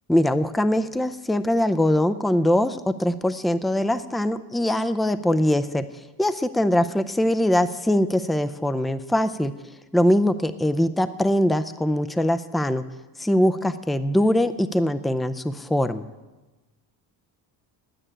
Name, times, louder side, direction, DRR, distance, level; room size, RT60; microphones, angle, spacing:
voice 1, 0.1-5.9 6.2-9.5 9.9-12.8 13.2-16.1, left 1 dB, ahead, 11 dB, 0.5 m, -22 dB
9.9 x 9.2 x 9.9 m, 1.2 s
supercardioid pair, 85°, 48 cm